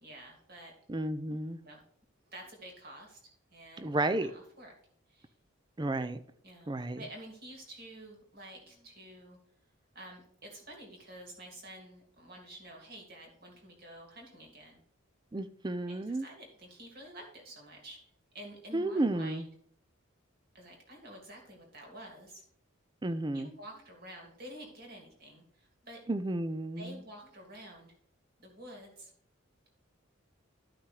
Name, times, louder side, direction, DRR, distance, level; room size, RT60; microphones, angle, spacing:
voice 1, 0.0-0.7 1.6-1.8 2.3-3.2 3.5-4.7 5.1-5.3 6.4-9.4 9.9-14.8 15.9-18.0 18.3-19.4 20.5-22.4 23.3-26.0 26.8-27.9 28.4-29.1, right 1 dB, 45° right, 0 dB, 2.5 m, -49 dB
voice 2, 0.9-1.6 3.8-4.3 5.8-6.2 6.7-7.0 15.3-16.3 18.7-19.5 23.0-23.5 26.1-27.0, right 2 dB, 20° right, 12 dB, 0.4 m, -32 dB
13.5 x 5.8 x 3.3 m, 0.64 s
head